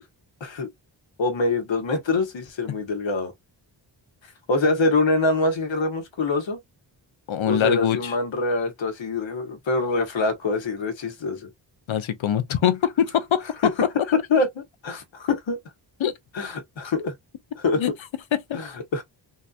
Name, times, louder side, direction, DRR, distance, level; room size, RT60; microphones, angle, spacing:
voice 1, 1.2-3.3 4.5-6.6 7.5-11.5 13.6-13.7 14.1-15.6 16.3-17.1 17.5-17.8 18.5-19.0, left 3 dB, 75° left, 1.3 m, -24 dB
voice 2, 7.3-8.1 11.9-13.4 16.0-16.1 17.8-17.9 18.5-18.6, left 9 dB, 90° left, 0.8 m, -23 dB
3.8 x 2.7 x 2.4 m
wide cardioid pair, 115°, 46 cm